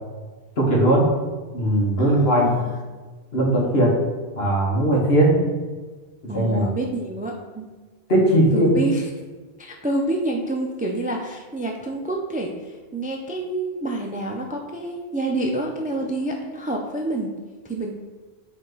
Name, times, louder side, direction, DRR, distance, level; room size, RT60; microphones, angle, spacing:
voice 1, 0.6-1.1 1.5-2.6 3.3-3.9 4.4-5.4 6.3-6.7 8.1-8.8, right 1 dB, 65° left, -3 dB, 1.6 m, -18 dB
voice 2, 2.0-2.7 6.3-7.7 8.5-9.1 9.6-17.3 17.7-17.9, right 2 dB, 10° right, 1 dB, 0.4 m, -28 dB
8.1 x 3.5 x 3.9 m, 1.3 s
omnidirectional pair, 1.1 m